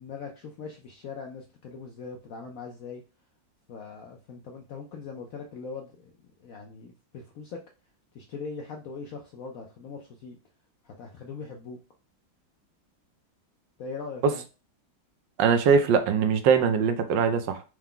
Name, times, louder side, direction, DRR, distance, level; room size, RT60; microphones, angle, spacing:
voice 1, 0.0-3.0 3.7-6.1 6.4-7.6 8.1-10.4 10.8-11.8 13.8-14.4, left 5 dB, 80° left, 0.7 m, -40 dB
voice 2, 15.4-17.6, right 6 dB, 75° right, 1.2 m, -22 dB
4.6 x 2.2 x 3.7 m
omnidirectional pair, 2.1 m